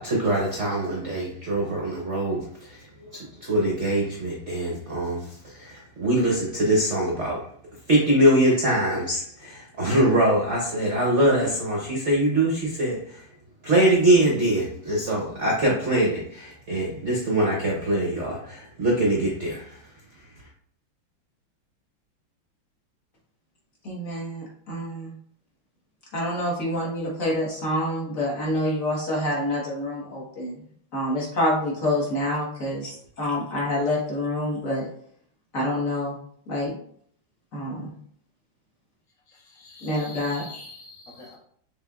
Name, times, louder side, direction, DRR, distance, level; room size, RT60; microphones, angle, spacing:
voice 1, 0.0-7.4 7.9-13.2 13.6-19.9, right 1 dB, 55° right, 0.8 m, -23 dB
voice 2, 23.8-25.1 26.1-30.6 30.9-34.9 35.5-36.2 36.5-36.7 37.5-37.9 39.8-40.7, left 1 dB, 45° left, 1.7 m, -27 dB
voice 3, 39.3-41.4, left 4 dB, 70° left, 2.4 m, -44 dB
6.5 x 3.5 x 2.4 m
omnidirectional pair, 2.3 m